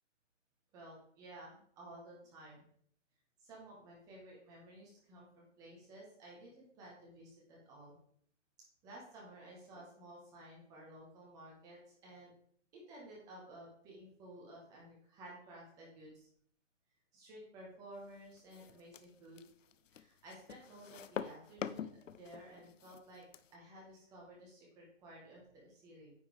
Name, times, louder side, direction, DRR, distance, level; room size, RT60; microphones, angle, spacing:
voice 1, 0.7-2.6 3.4-8.0 8.8-12.3 12.7-16.3 17.1-19.5 19.9-23.3 23.5-26.1, right 1 dB, 10° right, -3 dB, 1.4 m, -54 dB
sound 1, 18.3-23.5, left 8 dB, 80° left, 0.7 m, -46 dB
9.4 x 5.0 x 3.5 m, 0.64 s
hypercardioid pair, 165°, 37 cm